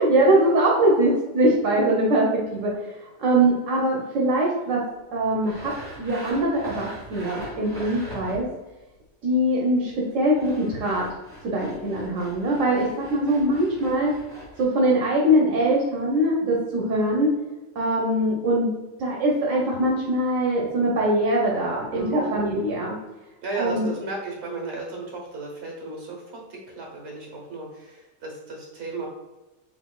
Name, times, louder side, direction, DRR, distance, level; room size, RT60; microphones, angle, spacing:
voice 1, 0.0-2.9 3.2-4.8 5.1-5.7 6.0-8.4 9.2-11.1 11.4-14.1 14.6-17.3 17.7-18.7 19.0-22.9 23.6-23.9, right 1 dB, 80° right, -3 dB, 1.2 m, -22 dB
Sawing, 5.4-8.6 10.1-14.6, equal, 35° right, 1.6 m, -41 dB
voice 2, 21.9-22.6 23.4-26.2 26.5-29.1, right 2 dB, 60° right, -1 dB, 1.3 m, -34 dB
4.1 x 3.7 x 2.3 m, 1.1 s
omnidirectional pair, 1.3 m